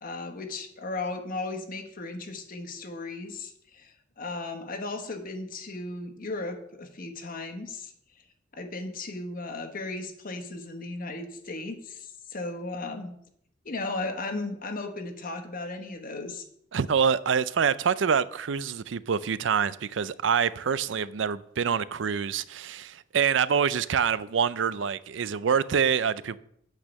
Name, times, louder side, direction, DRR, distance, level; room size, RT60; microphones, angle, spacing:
voice 1, 0.0-7.9 8.5-13.1 13.6-16.5, left 2 dB, 50° left, 1.2 m, -36 dB
voice 2, 16.7-26.4, right 7 dB, 80° right, 0.5 m, -26 dB
9.0 x 8.3 x 5.3 m
head